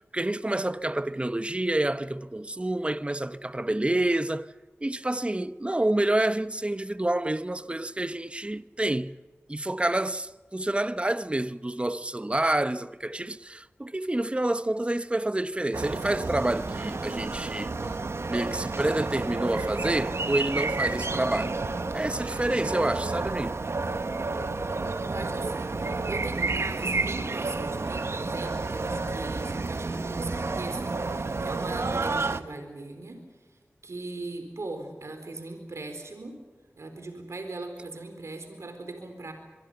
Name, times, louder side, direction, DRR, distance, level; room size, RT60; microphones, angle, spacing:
voice 1, 0.0-4.5 4.8-9.1 9.5-17.7 18.3-21.6 21.9-23.6, right 1 dB, 25° right, 1.0 m, -28 dB
sound 1, 15.7-32.4, right 3 dB, 65° right, 1.2 m, -30 dB
voice 2, 25.1-33.2 33.8-36.3 36.8-39.3, right 2 dB, 80° right, 4.3 m, -39 dB
24.5 x 23.0 x 6.9 m
wide cardioid pair, 45°, 5 cm